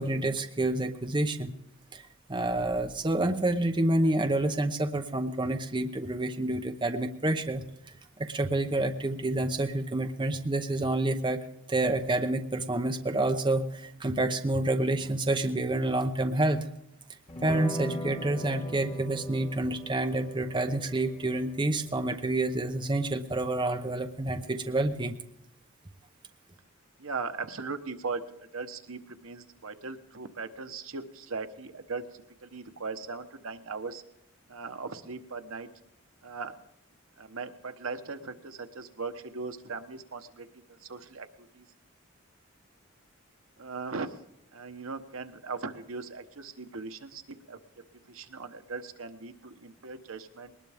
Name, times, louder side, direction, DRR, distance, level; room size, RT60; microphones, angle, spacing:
voice 1, 0.0-1.5 1.9-2.0 2.3-7.6 8.2-11.4 11.7-16.6 17.4-25.2, right 2 dB, 25° right, 5 dB, 0.8 m, -28 dB
sound 1, 17.3-25.0, left 1 dB, 30° left, 2.5 m, -42 dB
voice 2, 27.0-34.0 34.5-35.7 36.2-36.5 37.2-41.7 43.6-44.2 44.5-47.6 48.0-50.5, right 4 dB, 75° right, 8 dB, 1.1 m, -39 dB
21.0 x 19.5 x 3.5 m, 0.83 s
head